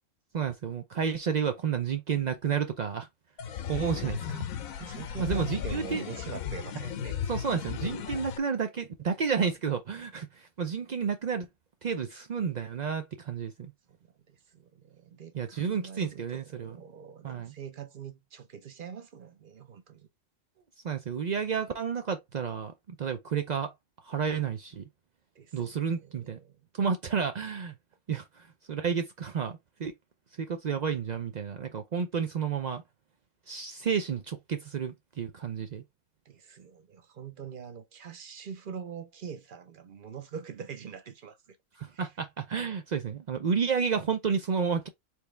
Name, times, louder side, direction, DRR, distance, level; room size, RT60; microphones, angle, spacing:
voice 1, 0.3-3.1 3.7-4.4 4.8-6.0 7.3-11.5 11.8-13.7 15.4-16.8 17.2-17.5 20.8-23.7 24.0-24.8 25.5-26.4 26.7-27.7 28.1-29.9 30.4-32.8 33.5-35.8 41.8-44.9, right 6 dB, 85° right, 0.3 m, -31 dB
sound 1, 3.4-8.4, left 8 dB, 75° left, 1.1 m, -35 dB
voice 2, 4.9-7.2 13.9-20.1 25.3-26.9 36.2-41.6 41.9-42.1, right 7 dB, 50° right, 0.7 m, -44 dB
4.5 x 3.3 x 3.3 m
omnidirectional pair, 1.5 m